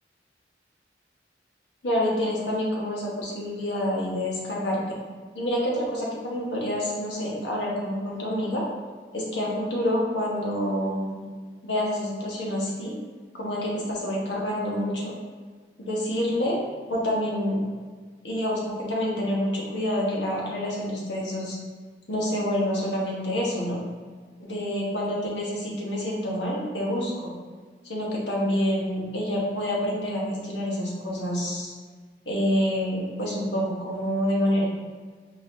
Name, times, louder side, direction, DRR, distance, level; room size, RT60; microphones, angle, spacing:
voice 1, 1.8-5.0 5.3-8.6 9.1-11.2 11.6-12.9 13.3-15.1 15.8-16.6 16.9-17.6 18.2-21.6 22.1-23.8 24.4-27.3 27.8-31.7 32.2-34.6, equal, 80° left, -4 dB, 1.3 m, -27 dB
4.4 x 4.2 x 2.7 m, 1.5 s
head